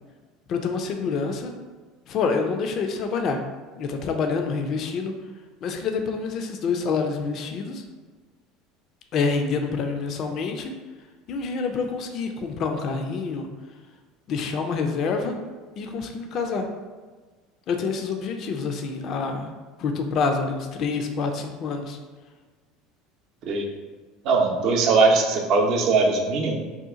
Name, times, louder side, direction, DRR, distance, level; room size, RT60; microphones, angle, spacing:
voice 1, 0.5-1.5 2.1-3.4 3.8-5.1 5.6-7.8 9.1-10.7 11.3-13.5 14.3-15.4 15.8-16.7 17.7-19.5 19.8-22.0, left 4 dB, 50° left, 5 dB, 0.4 m, -27 dB
voice 2, 24.2-26.6, right 4 dB, 60° right, 2 dB, 0.6 m, -20 dB
2.8 x 2.3 x 3.6 m, 1.4 s
hypercardioid pair, 90°, 0 cm